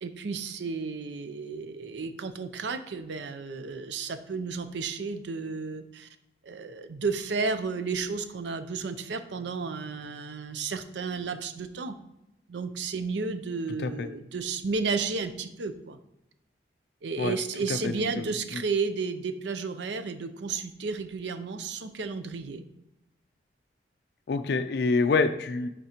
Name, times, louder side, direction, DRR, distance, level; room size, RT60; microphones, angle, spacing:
voice 1, 0.0-6.1 6.4-12.0 12.5-16.0 17.0-22.6, right 4 dB, 80° right, 10 dB, 0.5 m, -32 dB
voice 2, 17.8-18.6 24.3-25.7, left 4 dB, 60° left, 9 dB, 0.4 m, -27 dB
10.5 x 3.7 x 2.9 m, 0.88 s
head